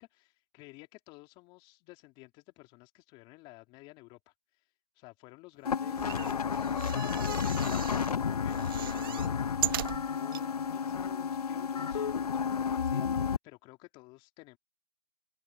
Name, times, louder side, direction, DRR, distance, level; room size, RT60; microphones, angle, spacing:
voice 1, 0.0-4.3 5.0-14.6, left 23 dB, 25° left, 3.3 m, -53 dB
sound 1, 5.6-13.4, left 6 dB, 75° left, 0.9 m, -31 dB
sound 2, 5.9-8.1 8.5-10.5 11.0-11.1 11.3-11.4, right 12 dB, 35° right, 0.4 m, -38 dB
open air
hypercardioid pair, 140°, 20 cm